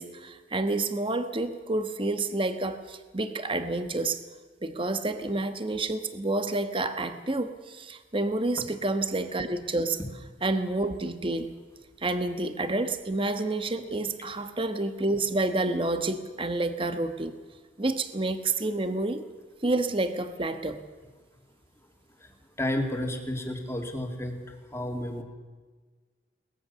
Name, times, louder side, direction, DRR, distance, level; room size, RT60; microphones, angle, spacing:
voice 1, 0.0-4.2 4.6-10.0 10.4-11.5 12.0-17.4 17.8-19.2 19.6-20.8, right 2 dB, 30° right, 9 dB, 1.3 m, -29 dB
voice 2, 22.6-24.3 24.7-25.2, left 1 dB, 15° left, 3 dB, 2.7 m, -31 dB
23.0 x 19.5 x 6.9 m, 1.4 s
head